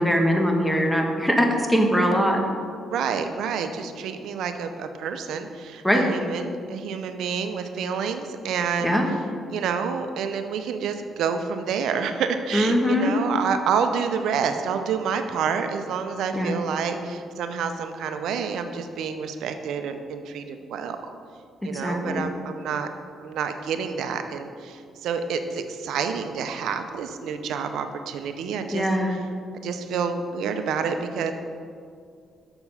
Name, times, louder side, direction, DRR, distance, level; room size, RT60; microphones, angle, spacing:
voice 1, 0.0-2.4 5.8-6.0 8.8-9.1 12.5-13.1 16.3-16.5 21.6-22.2 28.7-29.2, equal, 5° left, 2 dB, 1.2 m, -22 dB
voice 2, 2.9-9.0 9.5-21.0 21.6-22.9 23.2-28.9 29.6-31.3, right 6 dB, 80° right, 8 dB, 0.6 m, -28 dB
7.0 x 6.8 x 5.5 m, 2.2 s
cardioid pair, 90°, 0 cm